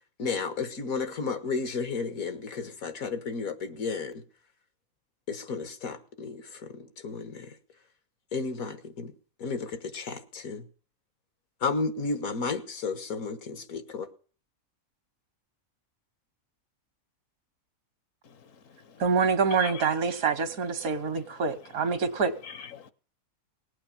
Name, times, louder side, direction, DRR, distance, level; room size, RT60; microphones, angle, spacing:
voice 1, 0.2-4.2 5.3-7.5 8.3-9.1 9.4-10.7 11.6-14.1, left 4 dB, 80° left, 1.8 m, -33 dB
voice 2, 18.2-19.0 19.5-19.9 20.8-20.9 21.9-22.1 22.4-22.9, left 7 dB, 65° left, 1.3 m, -43 dB
voice 3, 19.0-22.3, right 5 dB, 80° right, 1.7 m, -26 dB
19.0 x 8.7 x 7.2 m
omnidirectional pair, 1.5 m